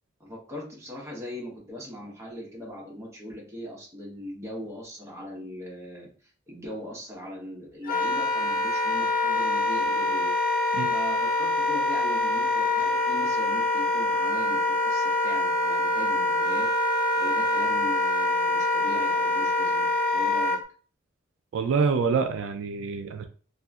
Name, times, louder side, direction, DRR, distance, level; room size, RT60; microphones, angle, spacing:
voice 1, 0.2-6.1 6.5-10.3 10.9-16.7 17.2-20.6, left 1 dB, 15° right, -3 dB, 0.9 m, -40 dB
Wind instrument woodwind instrument, 7.8-20.6, left 2 dB, 45° left, 0.4 m, -25 dB
voice 2, 21.5-23.2, right 5 dB, 75° right, 7 dB, 0.3 m, -26 dB
2.7 x 2.5 x 2.3 m, 0.40 s
head